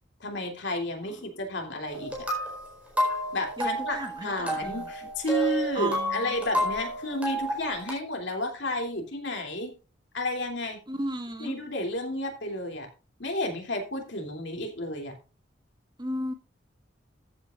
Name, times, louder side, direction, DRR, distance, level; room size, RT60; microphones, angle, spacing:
voice 1, 0.2-2.3 3.3-4.0 4.2-9.7 10.1-10.8 11.4-12.9 13.2-15.1, left 1 dB, 65° left, 3.0 m, -31 dB
sound 1, 1.9-7.9, equal, 5° right, 4.4 m, -31 dB
voice 2, 3.6-4.9 5.7-6.4 10.9-11.6 16.0-16.3, right 1 dB, 20° right, 1.5 m, -34 dB
14.5 x 8.6 x 2.5 m
head